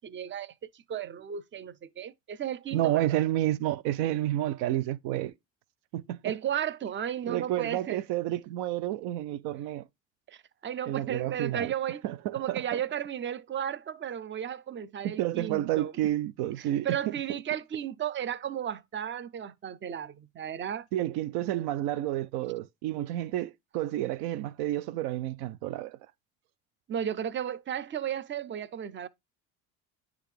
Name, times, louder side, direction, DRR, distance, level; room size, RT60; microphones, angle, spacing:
voice 1, 0.0-3.2 6.2-8.0 10.3-12.0 12.3-15.9 16.6-20.9 21.4-21.5 26.9-29.1, right 9 dB, 30° right, 0.7 m, -34 dB
voice 2, 2.7-5.3 5.9-6.2 7.3-9.8 10.9-11.7 12.0-12.8 15.0-17.1 20.9-26.0, right 14 dB, 70° right, 0.6 m, -30 dB
9.9 x 3.5 x 3.3 m
hypercardioid pair, 75°, 40 cm